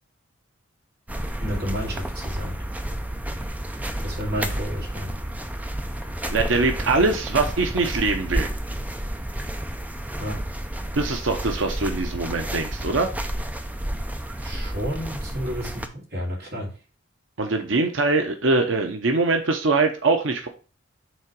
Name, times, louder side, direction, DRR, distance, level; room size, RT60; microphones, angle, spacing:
sound 1, 1.1-15.9, right 1 dB, 10° right, 0.4 m, -31 dB
voice 1, 1.4-2.6 4.0-5.1 10.2-10.4 14.4-16.7, equal, 50° right, 2.6 m, -31 dB
voice 2, 6.3-8.5 10.9-13.1 17.4-20.5, right 3 dB, 80° right, 0.8 m, -22 dB
6.2 x 3.9 x 4.6 m
head